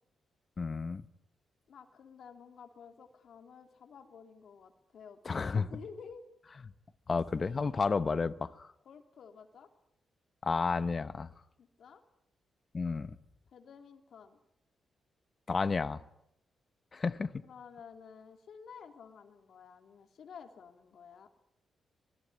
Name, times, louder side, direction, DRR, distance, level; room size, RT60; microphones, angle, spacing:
voice 1, 0.6-1.0 5.2-5.7 7.1-8.7 10.4-11.3 12.7-13.1 15.5-16.0 16.9-17.3, left 4 dB, 30° left, 13 dB, 0.9 m, -31 dB
voice 2, 1.7-6.2 7.3-7.8 8.8-9.7 11.6-12.0 13.5-14.4 17.4-21.3, left 6 dB, 65° left, 6 dB, 3.0 m, -52 dB
26.0 x 20.0 x 9.7 m, 0.79 s
wide cardioid pair, 145°, 0 cm